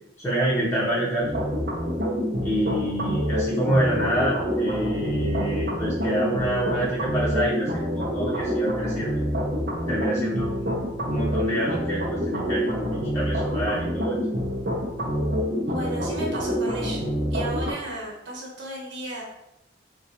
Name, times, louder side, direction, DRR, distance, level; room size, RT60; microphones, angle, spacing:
voice 1, 0.2-1.3 2.4-9.2 9.9-14.2, right 1 dB, 15° left, -10 dB, 0.7 m, -27 dB
sound 1, 1.2-17.7, equal, 55° right, 0.6 m, -27 dB
voice 2, 15.7-17.0 17.3-19.2, right 2 dB, 75° right, -3 dB, 1.1 m, -33 dB
3.8 x 2.2 x 2.8 m, 0.85 s
head